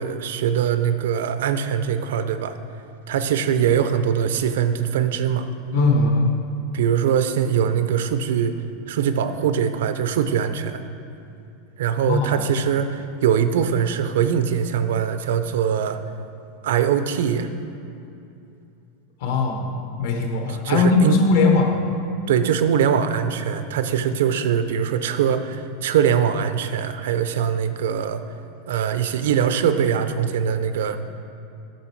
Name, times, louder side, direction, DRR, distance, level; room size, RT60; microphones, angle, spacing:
voice 1, 0.0-2.6 3.1-5.5 6.7-8.5 8.9-10.8 11.8-16.0 16.6-17.5 20.6-21.1 22.3-28.2 28.7-31.0, right 8 dB, 80° right, 10 dB, 0.5 m, -22 dB
voice 2, 5.7-6.3 12.1-12.5 19.2-21.9, left 3 dB, 60° left, 2 dB, 1.2 m, -20 dB
8.6 x 6.3 x 4.6 m, 2.7 s
supercardioid pair, 165°, 0 cm